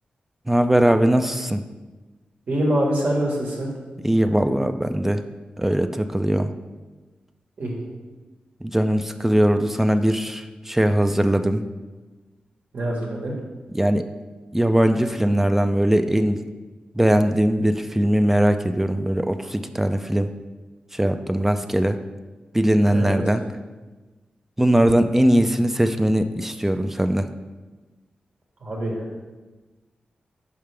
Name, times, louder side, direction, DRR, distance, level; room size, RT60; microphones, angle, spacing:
voice 1, 0.5-1.6 4.0-5.2 5.6-6.5 8.6-11.7 13.7-14.0 14.5-16.4 17.0-20.3 20.9-22.0 22.5-23.4 24.6-27.3, right 1 dB, 10° right, 8 dB, 0.3 m, -20 dB
voice 2, 2.5-3.7 7.6-7.7 12.7-13.3 22.9-23.2 28.6-28.9, right 1 dB, 65° right, -2 dB, 1.4 m, -24 dB
5.6 x 5.1 x 3.3 m, 1.2 s
cardioid pair, 75°, 3 cm